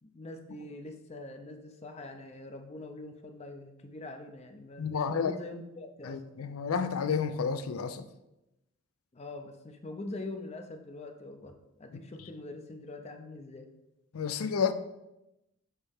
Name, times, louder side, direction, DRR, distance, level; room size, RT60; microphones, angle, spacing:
voice 1, 0.0-6.2 9.1-13.7, left 2 dB, 30° left, 0.5 m, -43 dB
voice 2, 4.8-5.3 6.0-8.1 14.1-14.7, left 6 dB, 85° left, 0.4 m, -30 dB
7.3 x 4.1 x 3.5 m
head